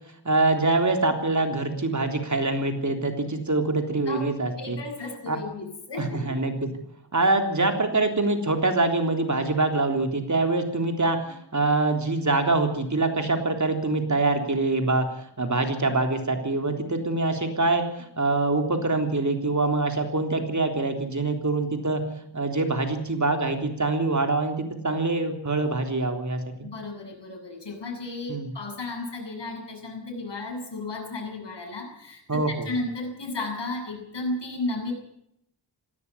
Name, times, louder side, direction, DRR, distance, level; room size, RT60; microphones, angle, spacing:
voice 1, 0.3-4.8 5.3-5.4 6.0-6.7 7.1-15.1 15.4-22.0 22.3-26.7 28.3-28.5 32.3-32.7, right 2 dB, 40° right, 5 dB, 3.5 m, -24 dB
voice 2, 4.5-6.4 26.6-34.9, left 2 dB, 70° left, 2 dB, 8.0 m, -34 dB
18.5 x 16.5 x 8.6 m, 0.75 s
wide cardioid pair, 70°, 44 cm